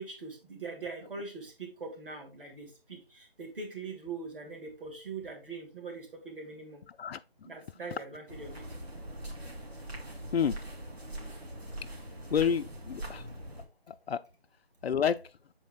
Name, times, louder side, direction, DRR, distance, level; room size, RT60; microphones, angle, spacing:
voice 1, 0.0-6.8 7.5-8.6, right 4 dB, 60° right, 2.5 m, -42 dB
sound 1, 8.3-13.6, right 1 dB, 85° right, 2.4 m, -42 dB
voice 2, 12.3-13.3 13.9-14.2 14.8-15.2, left 7 dB, 80° left, 0.5 m, -29 dB
6.9 x 4.4 x 3.6 m
figure-of-eight pair, 165°, 31 cm